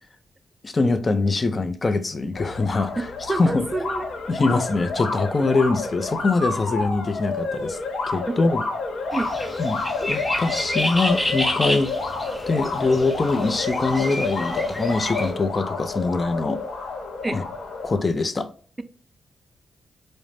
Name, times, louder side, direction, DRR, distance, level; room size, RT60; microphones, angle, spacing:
voice 1, 0.6-3.7 4.3-7.8 8.1-8.6 9.0-9.1 9.6-11.9 12.5-16.6 17.3-17.4 17.8-18.5, left 3 dB, 40° left, 0.5 m, -23 dB
sound 1, 2.3-18.0, left 3 dB, 80° left, 1.0 m, -29 dB
voice 2, 3.3-4.1 8.3-8.4 9.1-9.3 17.2-17.4, right 2 dB, 25° right, 0.4 m, -27 dB
sound 2, 9.1-15.3, left 1 dB, 15° left, 1.0 m, -30 dB
4.9 x 2.1 x 2.7 m
cardioid pair, 65°, 0 cm